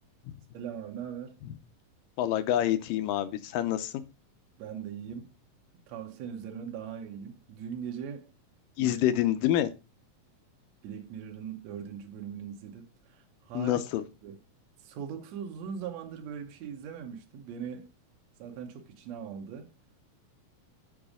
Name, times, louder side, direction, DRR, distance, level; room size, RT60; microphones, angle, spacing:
voice 1, 0.5-1.4 4.6-5.3 5.9-8.3 8.8-9.0 10.8-13.9 14.2-14.4 14.8-17.9 18.4-19.7, right 8 dB, 65° right, 1.9 m, -40 dB
voice 2, 2.2-3.9 8.8-9.7 13.5-14.0, left 12 dB, 90° left, 2.4 m, -27 dB
7.2 x 4.9 x 4.9 m
omnidirectional pair, 3.9 m